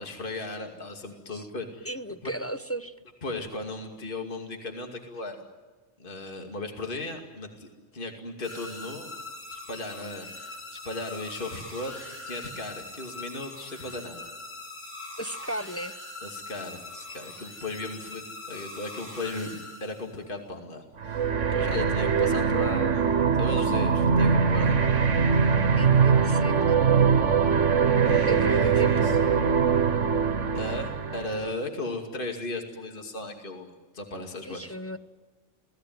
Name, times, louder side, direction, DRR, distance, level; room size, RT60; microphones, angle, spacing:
voice 1, 0.0-1.9 2.2-2.3 3.2-5.4 6.0-9.1 9.5-14.2 16.2-23.1 23.4-24.8 28.1-29.2 30.5-34.8, left 2 dB, 40° left, 3 dB, 2.6 m, -36 dB
voice 2, 1.8-2.9 15.2-15.9 25.8-26.8 28.3-29.0 34.5-35.0, right 1 dB, 15° left, 8 dB, 0.6 m, -34 dB
sound 1, 8.4-20.3, left 2 dB, 75° left, 5.2 m, -42 dB
sound 2, 21.0-31.5, right 6 dB, 70° right, 1.5 m, -22 dB
27.5 x 18.0 x 9.4 m, 1.3 s
omnidirectional pair, 1.3 m